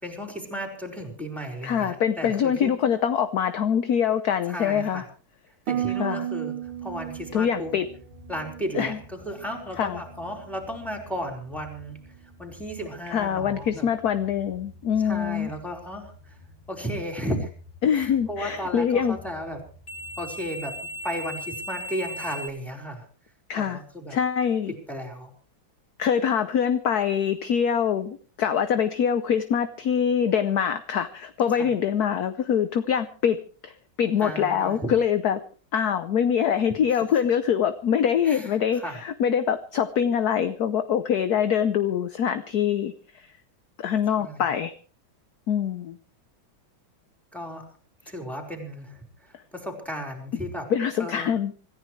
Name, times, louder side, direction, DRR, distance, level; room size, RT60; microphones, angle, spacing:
voice 1, 0.0-2.7 4.5-5.0 5.7-6.5 6.8-7.7 8.3-12.0 12.4-13.9 15.0-16.4 16.7-17.5 17.9-19.6 20.2-20.8 21.0-23.0 23.6-24.2 24.9-25.3 31.6-31.7 34.2-34.9 38.2-39.0 44.2-44.4 47.3-47.6 48.1-50.7 51.0-51.3, equal, ahead, 2 dB, 4.7 m, -34 dB
voice 2, 1.6-5.0 6.0-6.3 7.3-7.9 8.7-9.0 9.8-10.0 13.1-15.5 17.8-19.2 23.5-23.8 24.1-24.7 26.0-35.4 35.7-43.3 43.8-44.7 45.5-46.0 50.7-51.5, left 8 dB, 60° left, 10 dB, 1.2 m, -24 dB
Harp, 5.7-9.8 10.1-10.6 11.1-11.4, right 11 dB, 80° right, 1.8 m, -35 dB
sound 1, 6.6-22.5, equal, 15° left, 2.9 m, -43 dB
26.5 x 14.5 x 3.3 m, 0.40 s
omnidirectional pair, 2.2 m